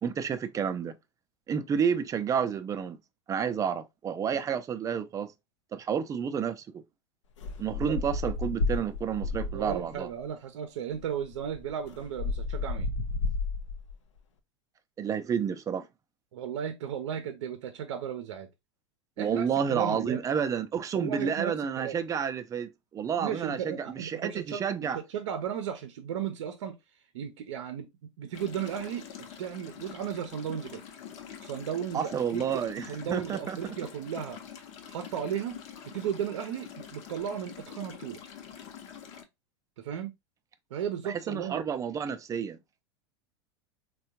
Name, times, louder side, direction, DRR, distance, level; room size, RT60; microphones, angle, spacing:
voice 1, 0.0-1.0 1.5-3.0 3.3-5.3 5.7-6.8 7.6-10.1 15.0-15.9 19.2-25.0 31.9-33.8 41.0-42.6, right 7 dB, 20° right, 0.4 m, -30 dB
sound 1, 7.4-9.9 10.9-11.0 11.3-13.9, left 3 dB, 85° left, 0.5 m, -32 dB
voice 2, 9.5-12.9 16.3-18.5 19.2-20.2 20.9-22.0 23.2-26.8 27.1-27.9 28.2-29.1 29.4-30.8 31.4-34.4 34.9-35.6 35.9-38.2 39.8-40.1 40.7-41.6, right 9 dB, 75° right, 0.6 m, -35 dB
sound 2, 28.3-39.2, left 8 dB, 55° left, 0.8 m, -46 dB
3.5 x 2.2 x 2.8 m
hypercardioid pair, 105°, 15 cm